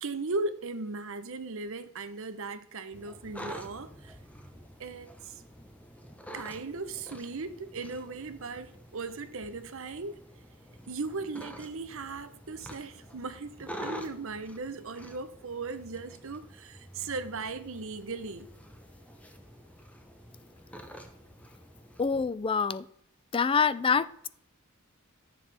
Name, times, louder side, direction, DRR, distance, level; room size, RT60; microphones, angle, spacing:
voice 1, 0.0-4.2 4.8-5.4 6.3-10.2 10.9-18.5, right 3 dB, 65° right, 0.9 m, -37 dB
sound 1, 2.9-22.0, equal, 5° left, 1.0 m, -47 dB
voice 2, 22.0-22.8 23.3-24.3, left 5 dB, 25° left, 0.3 m, -26 dB
14.0 x 7.2 x 3.5 m
head